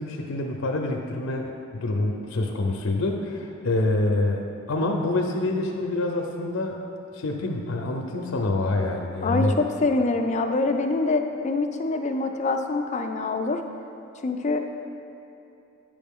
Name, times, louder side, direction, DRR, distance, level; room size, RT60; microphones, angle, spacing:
voice 1, 0.0-6.9 7.1-9.6, left 2 dB, 85° left, 2 dB, 0.5 m, -26 dB
voice 2, 9.2-13.6 14.2-14.6, left 3 dB, 35° left, 5 dB, 0.4 m, -25 dB
8.9 x 5.1 x 3.6 m, 2.8 s
head